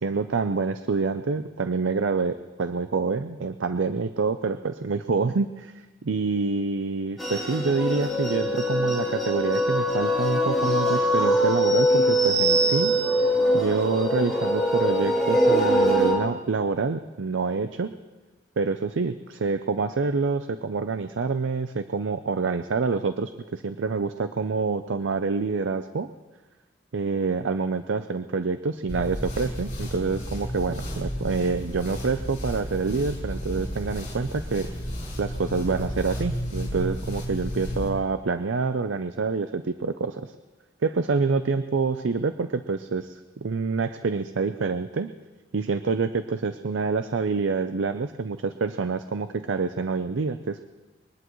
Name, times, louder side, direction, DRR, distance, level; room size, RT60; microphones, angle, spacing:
voice 1, 0.0-5.7 6.0-12.9 13.5-17.9 18.6-26.1 26.9-34.7 35.2-40.3 40.8-45.1 45.5-50.7, right 4 dB, 75° right, 10 dB, 0.5 m, -27 dB
sound 1, 7.2-16.1, equal, ahead, 5.0 m, -22 dB
sound 2, 28.9-37.9, equal, 40° left, 4.8 m, -33 dB
22.0 x 19.5 x 3.1 m, 1.2 s
head